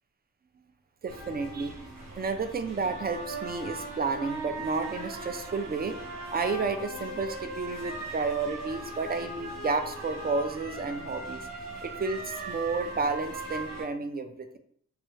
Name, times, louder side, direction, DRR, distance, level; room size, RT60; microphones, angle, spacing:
voice 1, 1.0-1.8 2.2-6.0 6.3-11.4 11.8-14.6, right 4 dB, 30° right, 8 dB, 0.4 m, -31 dB
sound 1, 1.1-13.8, right 2 dB, 70° right, 1.3 m, -39 dB
3.0 x 2.3 x 3.0 m, 0.63 s
cardioid pair, 65°, 32 cm